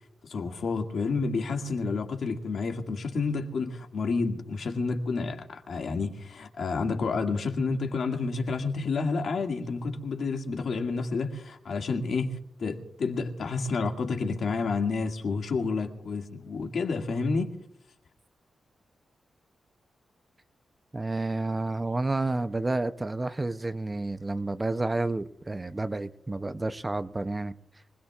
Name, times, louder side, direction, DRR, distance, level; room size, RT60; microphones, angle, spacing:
voice 1, 0.2-17.5, left 4 dB, 60° left, 2.0 m, -30 dB
voice 2, 20.9-27.5, right 2 dB, 20° right, 0.6 m, -30 dB
25.0 x 20.0 x 2.4 m
wide cardioid pair, 140°, 0 cm